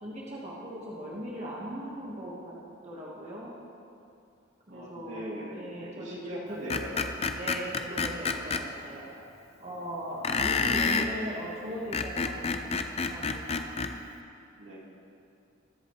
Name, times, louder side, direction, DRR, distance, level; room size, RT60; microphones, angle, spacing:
voice 1, 0.0-2.5 2.8-3.5 4.7-5.2 5.5-6.6 7.3-9.1 9.6-13.7, equal, 35° right, -5 dB, 1.4 m, -39 dB
voice 2, 4.7-7.1 14.6-14.8, equal, 70° right, -6 dB, 2.6 m, -40 dB
Screech, 6.7-8.6 10.2-11.1 11.7-13.9, left 4 dB, 30° left, 0.5 m, -28 dB
22.0 x 8.0 x 3.1 m, 2.6 s
head